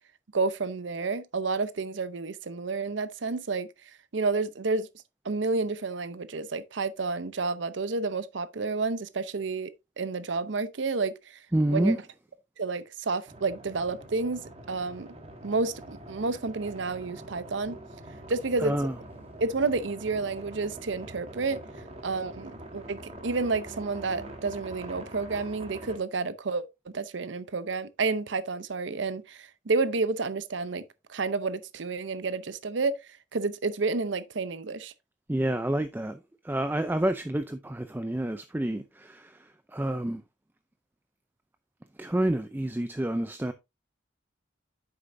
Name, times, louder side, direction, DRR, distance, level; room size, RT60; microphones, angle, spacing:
voice 1, 0.3-3.7 4.1-4.9 5.2-9.7 10.0-11.4 11.7-12.0 12.6-14.4 14.7-15.1 15.4-17.8 18.3-18.7 19.4-21.6 22.0-23.0 23.2-26.6 26.9-30.8 31.1-32.9 33.3-34.9, right 3 dB, 75° right, 0.7 m, -30 dB
voice 2, 11.5-12.0 18.6-18.9 35.3-36.2 36.4-40.2 42.0-43.5, right 1 dB, 10° right, 0.4 m, -28 dB
sound 1, 13.3-26.0, right 1 dB, 30° right, 1.4 m, -44 dB
9.0 x 6.8 x 2.6 m
head